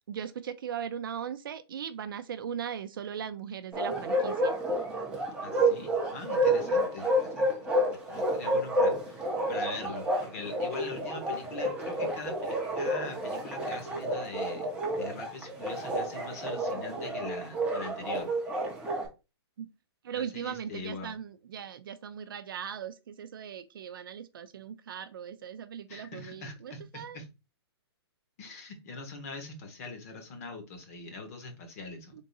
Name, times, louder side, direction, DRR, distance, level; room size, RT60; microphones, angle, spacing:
voice 1, 0.1-4.6 19.6-19.7 20.0-27.2 32.1-32.2, right 8 dB, 55° right, 0.5 m, -39 dB
Bark, 3.7-19.1, right 1 dB, 5° right, 0.7 m, -30 dB
voice 2, 5.4-14.7 14.9-18.3 20.1-21.1 25.9-27.3 28.4-32.2, left 3 dB, 35° left, 1.1 m, -42 dB
3.6 x 2.7 x 4.0 m
hypercardioid pair, 170°, 14 cm